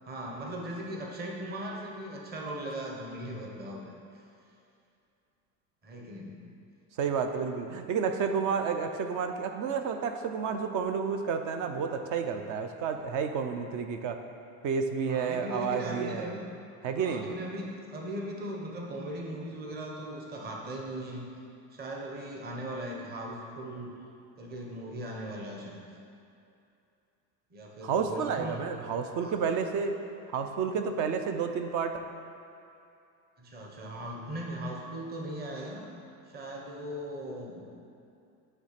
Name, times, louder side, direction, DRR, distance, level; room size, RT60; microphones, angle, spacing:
voice 1, 0.1-3.9 5.8-6.4 15.1-16.4 17.0-21.3 21.7-23.9 24.4-25.8 27.5-28.6 29.2-29.3 33.4-35.8 36.3-37.6, right 1 dB, 20° right, -1 dB, 0.9 m, -38 dB
voice 2, 7.0-14.2 14.6-16.3 16.8-17.3 27.8-30.0 30.3-32.0, right 6 dB, 45° right, 7 dB, 0.6 m, -30 dB
9.2 x 3.3 x 5.8 m, 2.6 s
supercardioid pair, 130°, 44 cm